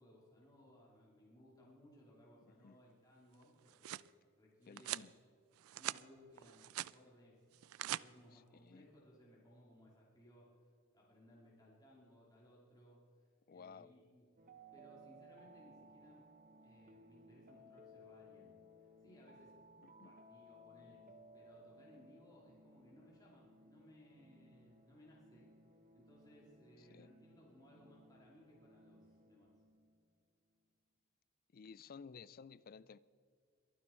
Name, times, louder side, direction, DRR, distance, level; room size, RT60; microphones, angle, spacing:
voice 1, 0.0-5.0 5.8-7.4 7.8-13.0 13.5-14.3 14.7-16.3 16.6-19.5 20.0-25.5 25.9-29.5, equal, 20° left, 2.7 m, -63 dB
sound 1, 3.4-4.1 4.8-5.1 5.6-6.0 6.4-6.9 7.5-8.0, right 14 dB, 80° right, 0.3 m, -43 dB
voice 2, 4.7-5.1 8.3-8.9 13.5-13.9 19.8-20.1 26.8-27.1 31.5-33.0, left 5 dB, 45° left, 0.4 m, -55 dB
sound 2, 14.4-30.1, equal, 40° right, 0.9 m, -62 dB
23.0 x 9.5 x 4.4 m
head